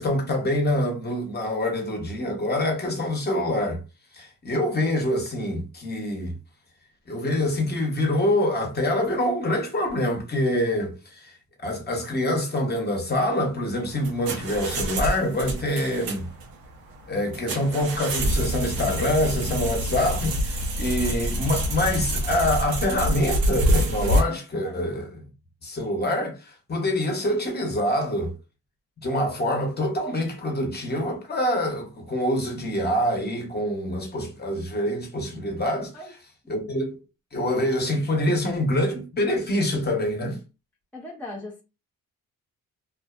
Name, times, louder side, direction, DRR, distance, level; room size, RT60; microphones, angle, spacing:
voice 1, 0.0-3.8 4.1-6.3 7.1-11.3 11.6-16.3 17.1-25.2 25.6-28.3 29.0-35.9 36.5-37.0 37.3-40.4, left 1 dB, 30° left, 0.9 m, -25 dB
sound 1, 13.8-24.2, right 1 dB, 85° right, 0.8 m, -26 dB
voice 2, 40.9-41.6, left 2 dB, 5° left, 0.5 m, -38 dB
2.5 x 2.1 x 2.4 m
cardioid pair, 95°, 35 cm